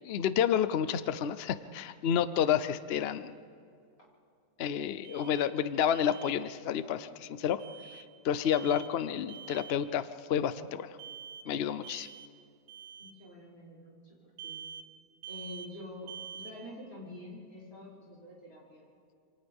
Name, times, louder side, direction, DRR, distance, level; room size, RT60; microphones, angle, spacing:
voice 1, 0.0-3.4 4.6-7.6 7.9-11.0 11.5-12.1, left 9 dB, 85° left, 13 dB, 0.5 m, -30 dB
Alarm, 5.0-5.5 5.9-6.3 7.6-8.0 8.4-8.9 9.3-9.8 11.0-11.5 11.8-12.3 12.7-13.1 14.4-14.9 15.2-15.7 16.1-16.5, right 8 dB, 85° right, 1.8 m, -46 dB
voice 2, 13.0-14.6 15.3-18.9, left 1 dB, 50° left, -7 dB, 7.0 m, -47 dB
27.5 x 27.5 x 3.6 m, 2.4 s
omnidirectional pair, 1.9 m